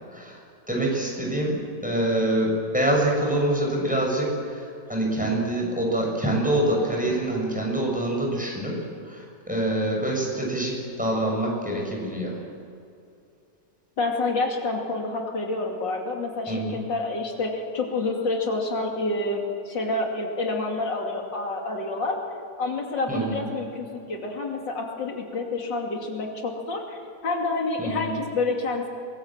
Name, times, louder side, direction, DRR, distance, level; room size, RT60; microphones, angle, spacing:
voice 1, 0.7-8.8 9.0-12.4 16.5-16.8 23.1-23.4 27.8-28.1, right 1 dB, 5° right, -2 dB, 6.8 m, -25 dB
voice 2, 14.0-22.2 22.6-28.9, left 3 dB, 80° left, 1 dB, 3.4 m, -28 dB
24.0 x 21.5 x 7.6 m, 2.5 s
omnidirectional pair, 1.9 m